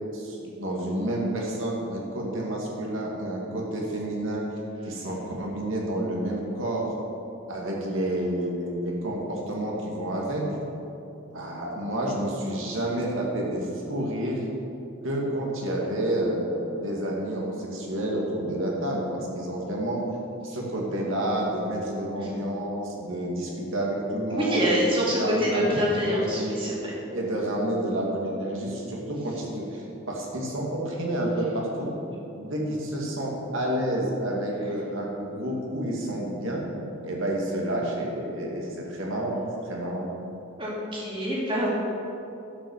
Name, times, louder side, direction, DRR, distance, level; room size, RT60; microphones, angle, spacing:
voice 1, 0.1-4.4 4.9-6.9 7.5-10.4 11.3-14.4 15.0-20.0 20.4-24.7 25.2-26.6 27.1-31.9 32.3-36.7 37.0-40.1, right 1 dB, 70° right, -2 dB, 2.1 m, -29 dB
voice 2, 24.3-26.9 40.6-41.7, equal, 25° right, -6 dB, 2.4 m, -26 dB
11.0 x 5.9 x 6.6 m, 2.9 s
head